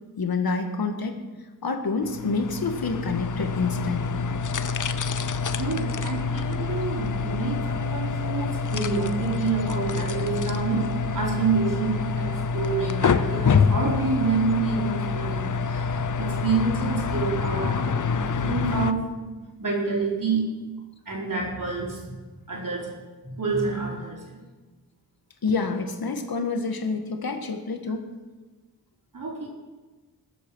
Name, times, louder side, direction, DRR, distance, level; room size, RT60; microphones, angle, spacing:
voice 1, 0.2-1.2 1.6-4.3 25.4-28.1, left 4 dB, 70° left, 5 dB, 1.8 m, -28 dB
sound 1, 2.0-18.9, left 5 dB, 55° left, 0.7 m, -27 dB
voice 2, 5.5-10.8 11.1-15.9 16.2-17.9 18.2-19.2 19.6-20.5 21.1-22.2 22.5-23.0 23.2-24.2 29.1-29.5, right 4 dB, 55° right, -2 dB, 4.5 m, -28 dB
21.0 x 8.4 x 6.3 m, 1.3 s
wide cardioid pair, 115°, 37 cm